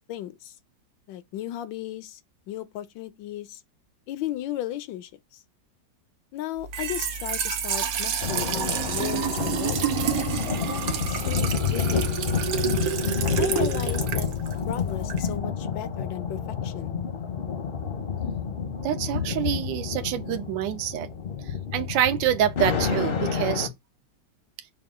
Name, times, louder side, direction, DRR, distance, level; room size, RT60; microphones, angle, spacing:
voice 1, 0.1-0.5 1.1-2.2 2.5-3.6 4.1-5.4 6.3-9.8 10.6-12.2 13.3-14.3 14.7-16.9, left 12 dB, 85° left, 1.3 m, -35 dB
Trickle dribble / Fill (with liquid), 6.6-15.4, right 7 dB, 65° right, 1.0 m, -29 dB
sound 1, 8.2-23.7, left 6 dB, 50° left, 0.7 m, -29 dB
voice 2, 18.8-21.1 21.4-23.7, right 11 dB, 85° right, 1.3 m, -26 dB
5.7 x 2.3 x 3.5 m
omnidirectional pair, 2.0 m